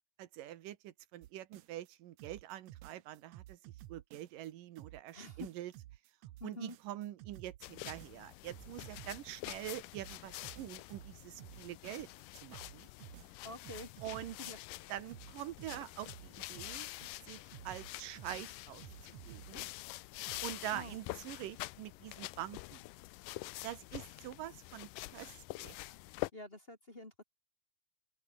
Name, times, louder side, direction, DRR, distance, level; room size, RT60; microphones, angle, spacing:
voice 1, 0.2-3.6 3.9-5.7 6.4-12.1 12.3-12.9 14.0-14.4 14.9-16.9 17.2-19.6 20.4-22.8 23.6-25.8, right 13 dB, 85° right, 2.9 m, -45 dB
sound 1, 1.2-1.9 2.2-4.5 4.8-9.7 9.9-12.2 12.5-14.8 15.1-20.0 20.2-21.1, right 15 dB, 70° right, 1.8 m, -53 dB
voice 2, 5.1-5.5 6.4-6.8 13.4-13.9 14.5-14.6 20.7-21.0 26.3-27.2, left 1 dB, 20° left, 2.3 m, -47 dB
sound 2, 7.6-26.3, left 20 dB, 80° left, 2.1 m, -47 dB
omnidirectional pair, 3.8 m